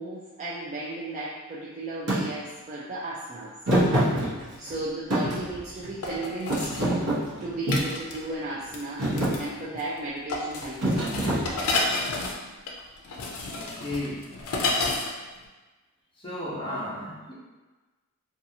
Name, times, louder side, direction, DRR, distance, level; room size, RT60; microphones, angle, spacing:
voice 1, 0.0-3.6 4.6-6.9 7.4-9.1 9.3-11.2, right 2 dB, 35° right, -7 dB, 0.3 m, -35 dB
Thump thud, 2.1-2.2 3.7-4.7 5.1-6.1 6.5-7.9 8.5-8.7 9.0-9.4 10.8-11.9, right 1 dB, 85° right, 0.9 m, -25 dB
sound 1, 4.7-4.8 6.0-6.9 7.7-8.2 8.7-8.8 9.2-9.5 9.7-10.0 10.3-15.1 15.4-15.5, left 3 dB, 90° left, 0.4 m, -30 dB
voice 2, 13.2-14.3 16.1-17.3, left 1 dB, 25° left, -8 dB, 0.8 m, -35 dB
2.6 x 2.3 x 2.7 m, 1.2 s
head